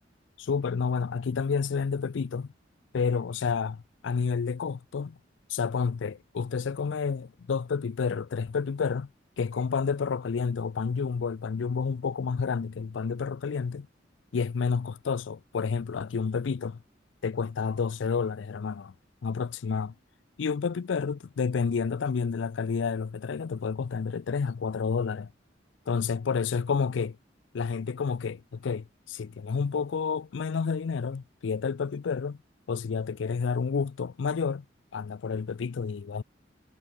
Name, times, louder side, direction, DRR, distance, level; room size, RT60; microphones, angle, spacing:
voice 1, 0.4-2.5 2.9-5.2 5.5-9.1 9.4-13.9 14.3-16.8 17.2-18.9 19.2-19.9 20.4-25.3 25.9-27.2 27.5-32.4 32.7-34.6 34.9-36.2, left 5 dB, 85° left, 0.4 m, -30 dB
head